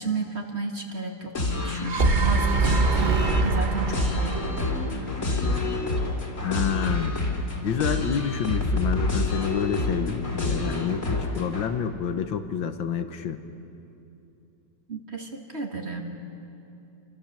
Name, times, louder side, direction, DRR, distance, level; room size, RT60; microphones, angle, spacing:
voice 1, 0.0-5.2 14.9-16.0, right 3 dB, 35° right, 2 dB, 2.0 m, -33 dB
sound 1, 1.3-11.7, left 2 dB, 40° left, 3.0 m, -28 dB
sound 2, 1.6-5.8, right 4 dB, 60° right, 0.5 m, -24 dB
voice 2, 6.4-7.2 7.6-13.4, left 7 dB, 80° left, 8 dB, 1.8 m, -28 dB
28.0 x 24.5 x 6.7 m, 2.7 s
omnidirectional pair, 2.1 m